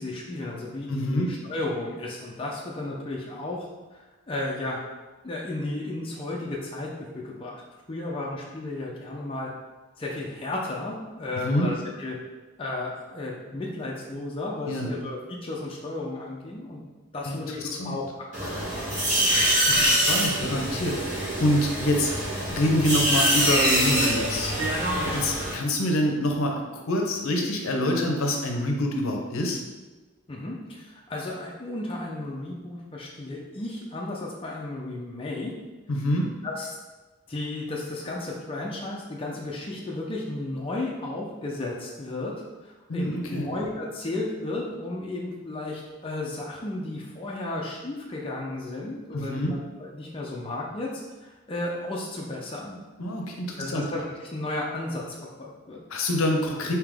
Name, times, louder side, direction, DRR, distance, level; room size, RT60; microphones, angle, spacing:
voice 1, 0.0-4.8 5.2-7.6 7.9-9.5 10.0-12.2 12.6-16.8 17.1-18.1 18.4-19.0 24.9-25.2 30.3-35.5 36.4-36.7 37.3-42.3 42.6-50.9 51.2-52.8 53.6-55.8, left 2 dB, 25° left, -3 dB, 0.4 m, -34 dB
voice 2, 0.9-1.3 11.4-11.7 14.7-14.9 17.3-17.4 17.8-18.0 19.7-22.1 22.5-24.5 24.8-29.6 35.9-36.3 42.9-43.5 49.1-49.5 53.0-53.8 55.9-56.8, left 1 dB, 80° left, 1 dB, 0.6 m, -26 dB
sound 1, 18.3-25.5, right 1 dB, 35° right, 1.5 m, -24 dB
3.6 x 2.8 x 3.5 m, 1.2 s
head